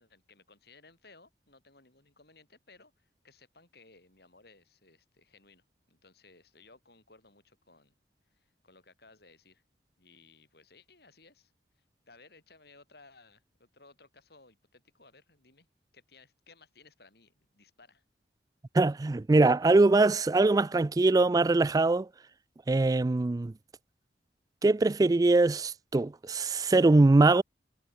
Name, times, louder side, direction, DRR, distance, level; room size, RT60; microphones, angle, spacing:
voice 1, 0.0-7.9 8.3-9.6 10.0-15.7 15.9-18.0, left 3 dB, 60° left, 6.6 m, -59 dB
voice 2, 18.7-22.1 22.7-23.5 24.6-27.4, right 2 dB, 20° right, 0.3 m, -22 dB
head